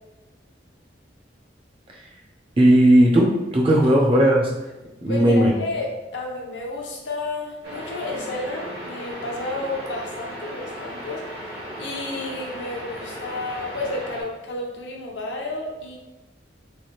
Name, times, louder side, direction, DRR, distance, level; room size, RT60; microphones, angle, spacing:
voice 1, 2.6-4.5 5.0-5.5, right 1 dB, 30° right, -1 dB, 0.5 m, -16 dB
voice 2, 5.1-16.0, left 2 dB, 75° left, -1 dB, 0.7 m, -31 dB
sound 1, 7.6-14.2, equal, 60° right, 0.9 m, -36 dB
3.2 x 2.5 x 2.9 m, 1.1 s
head